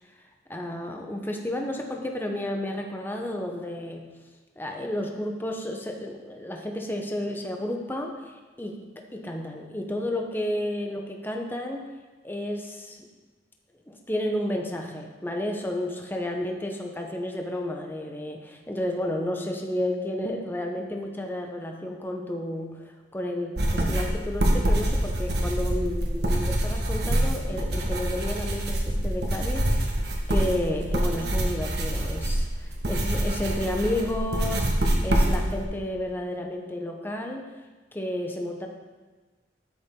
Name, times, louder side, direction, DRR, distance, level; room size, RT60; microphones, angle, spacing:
voice 1, 0.5-4.1 4.6-11.9 12.2-13.0 13.9-29.8 30.3-37.4 37.9-38.7, left 1 dB, 10° left, 2 dB, 0.8 m, -31 dB
sound 1, 23.6-35.6, right 1 dB, 65° right, 1.5 m, -25 dB
12.5 x 6.7 x 3.8 m, 1.3 s
head